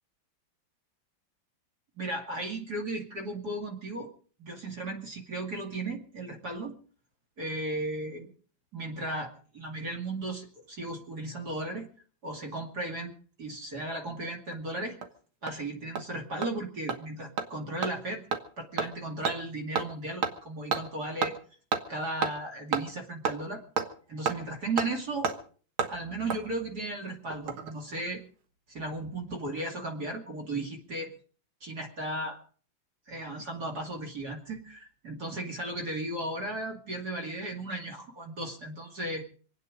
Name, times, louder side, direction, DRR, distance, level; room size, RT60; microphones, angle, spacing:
voice 1, 2.0-4.1 4.4-6.7 7.4-8.3 8.7-11.9 12.2-13.1 13.4-15.0 15.4-18.2 18.6-21.4 21.9-23.6 24.1-25.3 25.9-28.2 28.7-31.1 31.6-32.4 33.1-39.2, right 2 dB, 50° right, 3 dB, 2.9 m, -35 dB
Hammer, 14.5-14.6 15.0-15.1 15.5-15.6 16.0-16.1 16.4-16.5 16.9-17.0 17.4-17.5 17.8-17.9 18.3-18.4 18.8-18.9 19.2-19.4 19.8-19.9 20.2-20.3 20.7-20.8 21.2-21.3 21.7-21.8 22.2-22.3 22.7-22.8 23.2-23.4 23.8-23.9 24.3-24.4 24.8-24.9 25.2-25.4 25.8-25.9 26.3-26.4 27.3-27.7 28.0-28.1, right 5 dB, 85° right, 2.3 m, -29 dB
26.5 x 9.4 x 5.1 m, 0.43 s
omnidirectional pair, 2.2 m